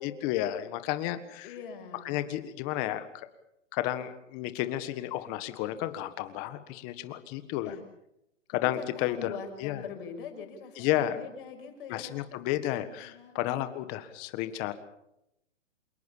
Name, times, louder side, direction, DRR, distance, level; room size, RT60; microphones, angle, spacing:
voice 1, 0.0-1.5 2.0-3.1 3.7-7.7 8.5-9.3 9.6-9.8 10.8-11.1 11.9-14.7, left 14 dB, 25° left, 11 dB, 1.6 m, -32 dB
voice 2, 1.4-2.2 7.6-7.8 8.7-12.3 12.7-13.4, left 6 dB, 45° left, 5 dB, 6.3 m, -43 dB
28.0 x 18.5 x 7.4 m, 0.83 s
hypercardioid pair, 155°, 37 cm